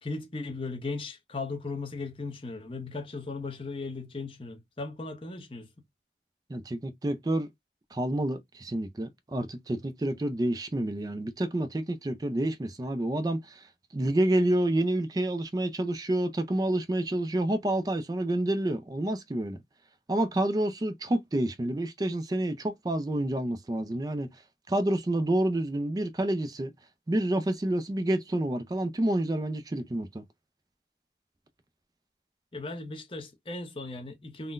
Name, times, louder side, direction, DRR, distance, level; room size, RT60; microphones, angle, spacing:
voice 1, 0.0-5.7 32.5-34.5, left 3 dB, 30° left, 0.7 m, -37 dB
voice 2, 6.5-7.5 7.9-19.6 20.1-24.3 24.7-26.7 27.1-30.2, right 1 dB, 20° right, 0.3 m, -28 dB
3.6 x 2.1 x 2.4 m
head